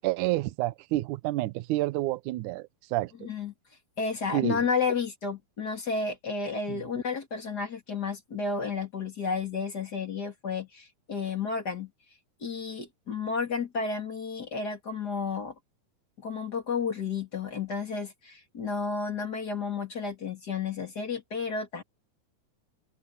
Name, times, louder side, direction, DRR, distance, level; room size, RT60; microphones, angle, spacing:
voice 1, 0.0-3.1 4.3-4.6 6.7-6.8, right 17 dB, 80° right, 1.8 m, -29 dB
voice 2, 3.2-3.5 4.0-11.9 12.4-15.5 16.2-21.8, left 5 dB, 30° left, 2.6 m, -32 dB
open air
omnidirectional pair, 4.5 m